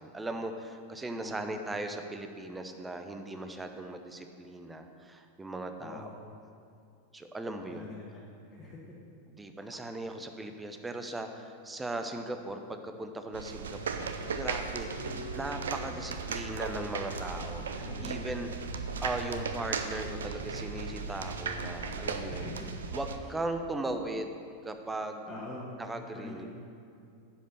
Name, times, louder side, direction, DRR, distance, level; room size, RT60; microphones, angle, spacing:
voice 1, 0.0-6.1 7.1-7.9 9.4-14.9 15.3-18.5 19.0-22.5 22.9-25.2 25.8-26.5, right 2 dB, 10° right, 6 dB, 0.7 m, -38 dB
voice 2, 1.2-1.7 5.8-6.1 7.7-8.8 15.0-15.2 17.8-18.6 22.3-22.7 25.3-25.7 26.1-26.5, left 2 dB, 20° left, -8 dB, 1.7 m, -44 dB
sound 1, 13.3-23.2, right 5 dB, 65° right, 0.6 m, -37 dB
sound 2, 13.6-22.6, left 1 dB, 80° left, 0.6 m, -46 dB
10.0 x 5.2 x 6.8 m, 2.5 s
figure-of-eight pair, 90°, 0 cm